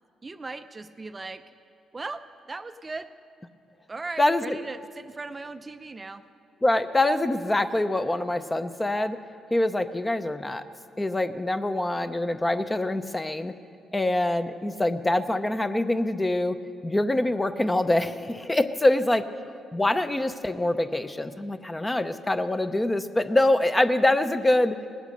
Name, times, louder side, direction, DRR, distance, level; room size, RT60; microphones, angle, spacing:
voice 1, 0.2-1.4 1.9-3.1 3.9-6.2, right 3 dB, 25° right, 10 dB, 0.4 m, -38 dB
voice 2, 4.2-4.6 6.6-9.2 9.5-10.6 11.0-13.5 13.9-16.6 16.8-19.2 19.7-24.8, left 1 dB, 15° left, 10 dB, 0.6 m, -24 dB
18.5 x 8.1 x 6.5 m, 2.3 s
cardioid pair, 90°, 0 cm